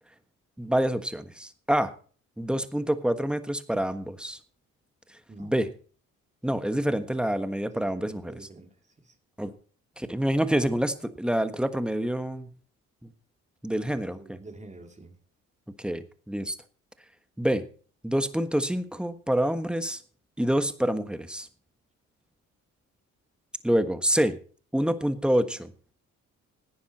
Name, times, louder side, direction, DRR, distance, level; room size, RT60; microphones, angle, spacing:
voice 1, 0.6-1.9 2.4-4.4 5.4-5.7 6.4-8.4 9.4-9.5 10.0-12.5 13.0-13.1 13.6-14.4 15.8-16.5 17.4-17.6 18.0-20.0 20.4-21.5 23.6-24.4 24.7-25.7, right 1 dB, 5° right, 10 dB, 1.4 m, -27 dB
voice 2, 7.7-9.2 13.8-15.1, right 2 dB, 25° right, 5 dB, 2.5 m, -48 dB
17.0 x 9.6 x 4.3 m, 0.42 s
cardioid pair, 90°, 30 cm